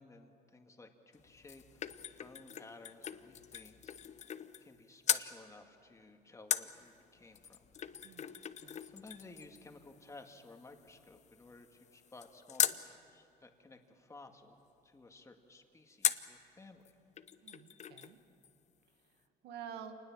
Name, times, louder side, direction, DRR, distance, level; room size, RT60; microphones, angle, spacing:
voice 1, 0.0-1.8 2.2-4.3 4.6-7.7 8.3-8.6 8.9-16.8, left 3 dB, 15° left, 4 dB, 2.0 m, -56 dB
sound 1, 1.1-4.8 5.0-5.3 6.5-12.8 16.0-16.4 16.9-17.0 17.2-18.2 18.4-18.5, left 9 dB, 45° left, 0.8 m, -39 dB
voice 2, 8.0-8.8 17.4-18.2 19.1-20.0, right 8 dB, 85° right, 6 dB, 2.1 m, -50 dB
27.0 x 20.0 x 7.4 m, 2.9 s
cardioid pair, 110°, 17 cm